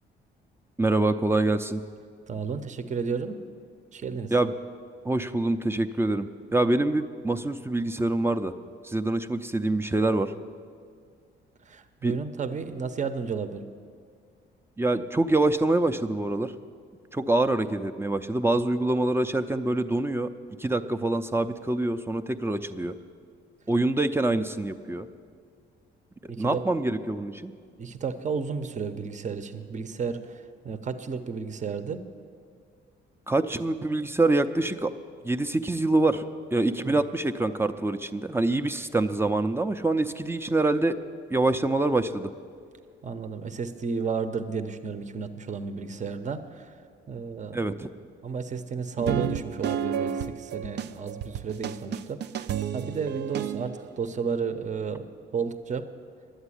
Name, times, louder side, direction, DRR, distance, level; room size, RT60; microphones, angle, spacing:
voice 1, 0.8-1.8 4.3-4.5 5.0-8.5 8.8-10.3 12.0-12.2 14.8-16.5 17.1-20.3 20.6-22.9 23.7-25.1 26.2-27.5 33.3-34.9 35.2-36.2 36.5-41.0 41.3-42.3 47.5-47.9, right 2 dB, 10° right, 8 dB, 0.5 m, -25 dB
voice 2, 2.3-3.4 3.9-4.3 11.7-13.6 26.3-26.6 27.8-32.0 36.7-37.0 43.0-46.7 47.1-47.6 48.2-52.4 52.7-55.1 55.3-55.9, right 5 dB, 35° right, 10 dB, 0.8 m, -32 dB
sound 1, 49.0-53.9, right 9 dB, 60° right, 0.5 m, -31 dB
11.5 x 8.0 x 9.8 m, 2.1 s
cardioid pair, 90°, 20 cm